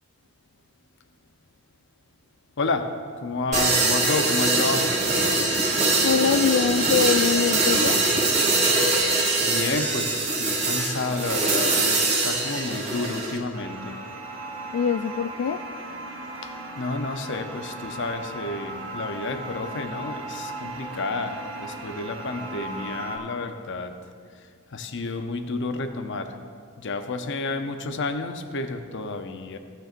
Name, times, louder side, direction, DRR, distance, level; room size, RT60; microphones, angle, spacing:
voice 1, 2.6-2.9 3.2-5.0 9.4-14.0 16.4-24.0 24.7-26.4 26.8-29.6, left 3 dB, 55° left, 7 dB, 0.7 m, -30 dB
sound 1, 3.5-13.4, right 3 dB, 35° right, 1.7 m, -23 dB
voice 2, 6.0-8.0 14.7-15.6, left 7 dB, 75° left, 8 dB, 0.3 m, -23 dB
sound 2, 13.5-23.2, right 2 dB, 70° right, 2.0 m, -37 dB
16.5 x 9.0 x 2.5 m, 2.1 s
head